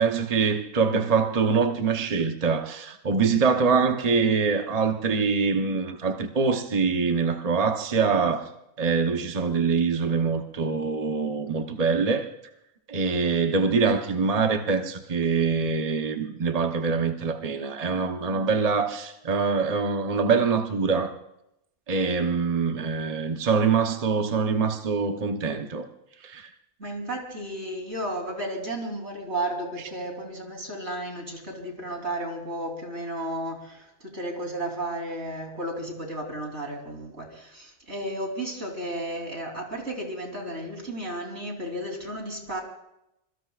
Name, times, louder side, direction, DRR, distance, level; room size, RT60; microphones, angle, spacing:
voice 1, 0.0-8.4 8.8-12.3 12.9-21.1 21.9-25.9 26.2-26.5, right 5 dB, 35° right, 1.0 m, -24 dB
voice 2, 26.8-42.6, right 1 dB, 80° right, 3.9 m, -33 dB
25.5 x 23.0 x 2.4 m
omnidirectional pair, 1.2 m